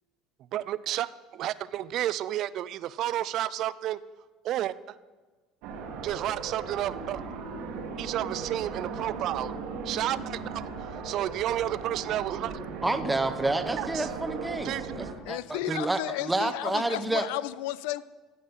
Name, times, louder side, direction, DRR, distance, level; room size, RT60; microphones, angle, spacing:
voice 1, 0.5-4.0 4.4-4.7 6.0-7.2 8.0-9.5 9.9-10.6 11.0-12.5 13.8-14.1 14.6-14.8 15.7-15.8, right 13 dB, 55° right, 18 dB, 0.4 m, -31 dB
sound 1, 5.6-15.1, right 4 dB, 75° right, 1.3 m, -37 dB
voice 2, 12.8-17.3, right 2 dB, 10° right, 9 dB, 0.6 m, -29 dB
voice 3, 15.2-18.0, left 15 dB, 85° left, 19 dB, 0.3 m, -33 dB
14.5 x 5.4 x 5.4 m, 1.3 s
supercardioid pair, 105°, 0 cm